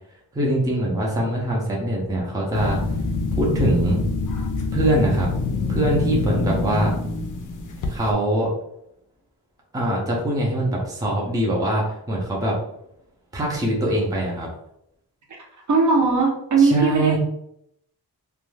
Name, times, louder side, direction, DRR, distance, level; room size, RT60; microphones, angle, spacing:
voice 1, 0.3-2.8 3.4-4.0 4.7-5.3 5.7-6.9 7.9-8.5 9.7-12.6 13.3-14.5 16.6-17.2, right 1 dB, 10° right, -3 dB, 0.5 m, -23 dB
sound 1, 2.5-8.1, left 3 dB, 55° left, 0.4 m, -25 dB
voice 2, 15.7-17.2, right 4 dB, 50° right, -1 dB, 0.7 m, -18 dB
2.5 x 2.2 x 3.1 m, 0.75 s
wide cardioid pair, 180°, 38 cm